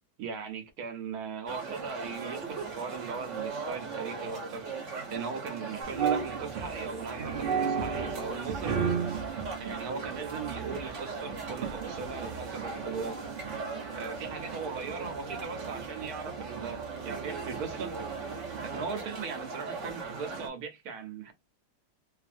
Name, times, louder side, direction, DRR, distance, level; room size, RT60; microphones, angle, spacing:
voice 1, 0.2-8.8 9.6-13.3 13.9-17.9 18.6-21.3, right 5 dB, 65° right, 1.2 m, -39 dB
sound 1, 1.5-20.5, right 4 dB, 50° right, 1.1 m, -39 dB
sound 2, 5.8-19.1, right 6 dB, 90° right, 0.4 m, -36 dB
3.0 x 2.5 x 2.5 m
omnidirectional pair, 1.8 m